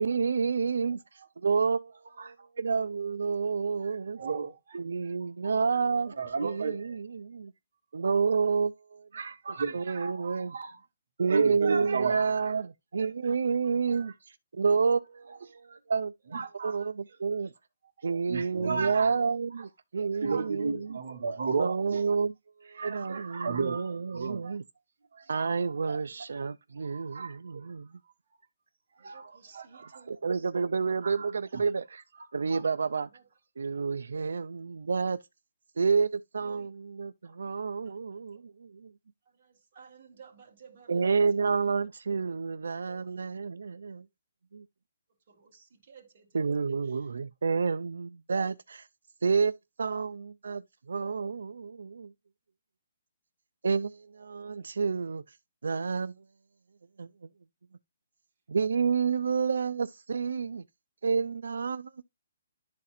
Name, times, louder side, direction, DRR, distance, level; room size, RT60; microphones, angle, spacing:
voice 1, 0.0-1.9 2.2-4.2 4.7-6.1 6.4-7.5 7.9-9.1 9.7-10.5 11.2-16.1 16.6-17.5 18.0-21.0 21.5-22.3 22.6-24.6 25.3-27.9 30.1-32.0 32.3-33.1 33.6-35.2 35.8-38.9 40.9-44.0 44.5-44.6 46.3-48.9 49.2-50.6 50.9-52.1 53.6-55.4 55.6-56.1 57.0-57.1 58.5-60.6 61.0-62.0, right 5 dB, 80° right, 0.3 m, -29 dB
voice 2, 3.8-4.8 6.2-6.9 9.1-10.8 11.3-12.5 13.3-13.4 13.9-14.1 15.7-15.8 16.3-16.9 18.3-19.1 20.2-22.0 22.7-24.6 25.1-25.5 25.9-26.0 26.8-27.7 29.0-30.0 31.0-31.3 31.5-31.6 32.2-32.6, right 5 dB, 60° right, 1.1 m, -34 dB
voice 3, 29.1-30.5 33.1-33.2 36.4-36.7 37.2-37.4 37.8-38.4 39.3-41.3 41.5-41.8 42.9-43.1 45.3-47.1, right 6 dB, 30° right, 1.7 m, -56 dB
11.5 x 4.1 x 2.4 m
hypercardioid pair, 180°, 0 cm